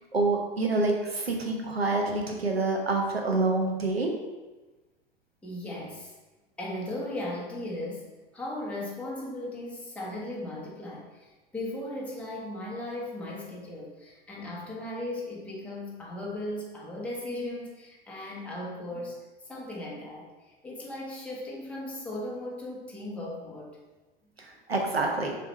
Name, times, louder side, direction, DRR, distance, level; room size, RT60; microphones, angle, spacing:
voice 1, 0.1-4.1 24.4-25.4, right 2 dB, 80° right, 1 dB, 1.0 m, -27 dB
voice 2, 5.4-6.1 6.6-8.1 8.3-19.2 19.5-23.8, left 1 dB, 5° left, -5 dB, 1.2 m, -37 dB
6.9 x 3.3 x 4.2 m, 1.2 s
figure-of-eight pair, 85°, 30 cm